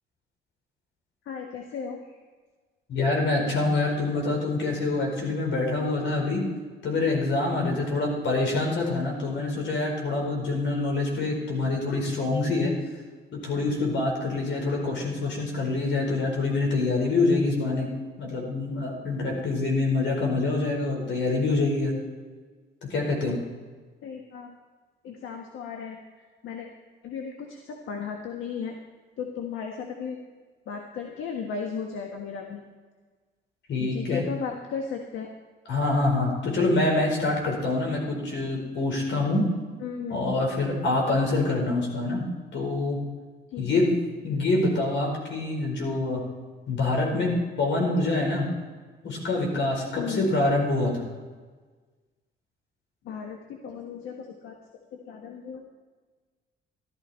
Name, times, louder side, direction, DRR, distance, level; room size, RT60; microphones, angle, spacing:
voice 1, 1.3-2.2 24.0-24.5 25.0-26.7 27.0-28.8 29.2-30.2 30.7-32.6 33.8-35.3 39.8-40.2 43.5-43.8 50.0-50.3 53.0-54.6 54.9-55.6, left 6 dB, 85° left, 3 dB, 1.4 m, -35 dB
voice 2, 2.9-6.4 6.8-12.7 13.3-17.9 18.2-22.0 22.8-23.4 33.7-34.2 35.7-39.5 40.1-42.2 42.5-43.0 43.6-43.9 44.2-46.2 46.7-48.5 49.0-51.1, left 2 dB, 65° left, 0 dB, 4.8 m, -26 dB
14.0 x 13.0 x 4.4 m, 1.4 s
cardioid pair, 90°, 20 cm